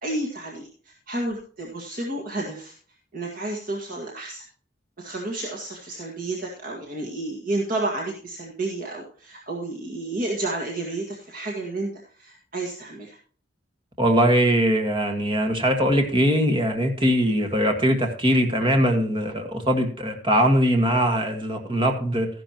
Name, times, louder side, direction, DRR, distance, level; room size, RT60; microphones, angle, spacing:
voice 1, 0.0-2.7 3.1-4.4 5.0-11.9 12.2-13.2, right 2 dB, 50° right, -1 dB, 1.8 m, -31 dB
voice 2, 14.0-22.3, equal, 25° right, 4 dB, 1.6 m, -21 dB
13.5 x 10.5 x 2.9 m, 0.43 s
head